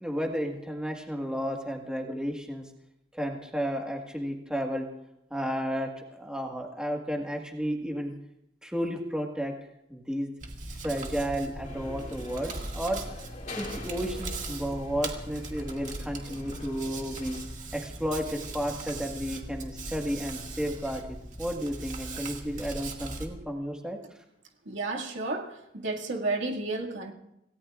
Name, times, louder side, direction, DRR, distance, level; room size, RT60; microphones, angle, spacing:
voice 1, 0.0-2.6 3.1-4.9 5.3-8.1 8.6-9.5 9.9-10.3 10.8-13.0 13.6-17.4 17.7-24.0, equal, 5° right, 1 dB, 1.6 m, -32 dB
Hands, 10.4-23.3, right 2 dB, 45° right, 2.1 m, -39 dB
sound 1, 11.6-17.4, left 2 dB, 40° left, 2.8 m, -45 dB
voice 2, 24.7-27.1, right 2 dB, 85° right, 0 dB, 2.1 m, -32 dB
27.5 x 17.5 x 2.5 m, 0.82 s
head